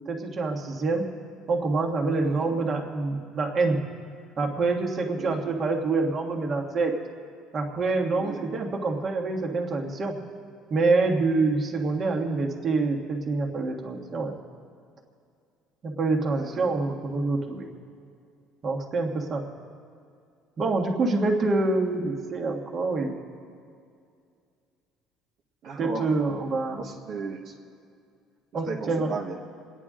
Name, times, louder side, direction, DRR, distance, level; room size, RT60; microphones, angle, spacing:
voice 1, 0.1-1.0 1.5-3.8 4.4-6.9 7.5-10.1 10.7-14.4 15.8-17.7 18.6-19.4 20.6-23.2 25.8-26.9 28.5-29.1, right 3 dB, 30° right, 1 dB, 1.5 m, -26 dB
voice 2, 16.3-16.8 25.6-26.2 26.8-27.5 28.7-29.4, right 4 dB, 50° right, -1 dB, 1.3 m, -36 dB
28.5 x 9.8 x 3.7 m, 2.4 s
cardioid pair, 155°, 0 cm